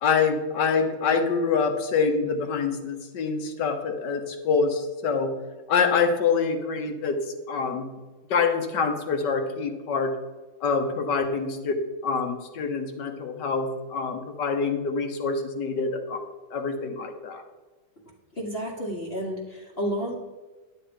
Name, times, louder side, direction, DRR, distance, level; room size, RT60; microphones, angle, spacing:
voice 1, 0.0-5.3 5.7-7.9 8.3-10.1 10.6-16.2 16.5-17.4, left 5 dB, 70° left, 6 dB, 1.7 m, -26 dB
voice 2, 18.3-20.1, equal, 35° left, -1 dB, 1.2 m, -31 dB
11.0 x 7.5 x 5.1 m, 1.2 s
omnidirectional pair, 2.0 m